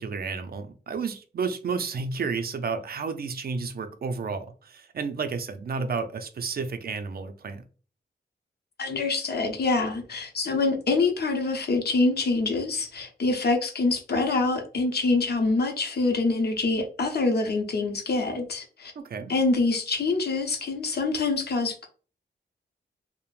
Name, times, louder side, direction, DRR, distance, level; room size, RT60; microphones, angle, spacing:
voice 1, 0.0-7.6 19.0-19.3, right 5 dB, 55° right, 0.4 m, -31 dB
voice 2, 8.8-18.9 19.3-21.9, left 3 dB, 60° left, 0.7 m, -25 dB
2.4 x 2.0 x 3.1 m
cardioid pair, 75°, 19 cm